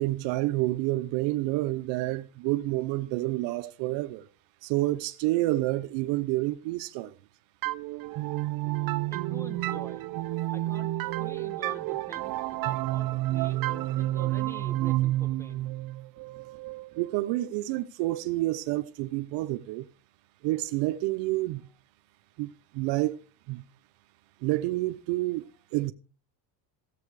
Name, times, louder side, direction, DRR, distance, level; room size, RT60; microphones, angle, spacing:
voice 1, 0.0-4.3 4.6-7.2 17.0-19.9 20.4-21.6 22.4-23.6 24.4-25.4 25.7-25.9, right 18 dB, 80° right, 0.8 m, -29 dB
sound 1, 7.6-17.2, right 16 dB, 55° right, 0.6 m, -30 dB
voice 2, 9.1-10.1 10.5-15.7, right 1 dB, 5° left, 0.9 m, -46 dB
15.0 x 7.7 x 4.8 m
cardioid pair, 125°, 42 cm